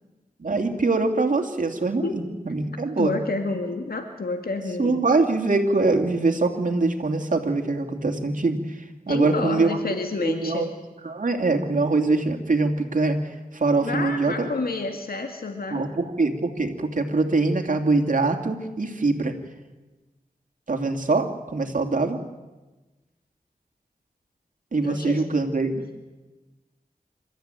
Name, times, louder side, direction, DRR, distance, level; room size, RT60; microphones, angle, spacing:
voice 1, 0.4-3.1 4.8-8.8 9.1-9.8 10.2-10.7 11.0-13.2 13.5-14.5 15.7-19.3 20.7-22.2 24.7-25.9, right 3 dB, 60° right, 3 dB, 2.8 m, -23 dB
voice 2, 3.0-5.0 9.1-10.7 13.8-15.9 24.8-25.2, left 3 dB, 85° left, 5 dB, 2.1 m, -29 dB
27.5 x 14.0 x 9.2 m, 1.2 s
wide cardioid pair, 60°, 15 cm